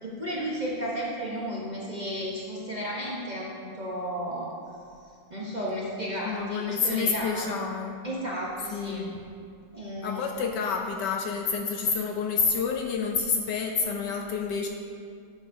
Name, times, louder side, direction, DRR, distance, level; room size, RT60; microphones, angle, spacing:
voice 1, 0.0-4.5 5.3-7.6 8.0-9.1 9.7-10.3, equal, 35° right, -5 dB, 0.7 m, -33 dB
voice 2, 6.2-8.0 8.7-9.1 10.0-14.7, left 5 dB, 70° left, 2 dB, 1.1 m, -28 dB
12.5 x 7.3 x 2.7 m, 2.3 s
omnidirectional pair, 2.3 m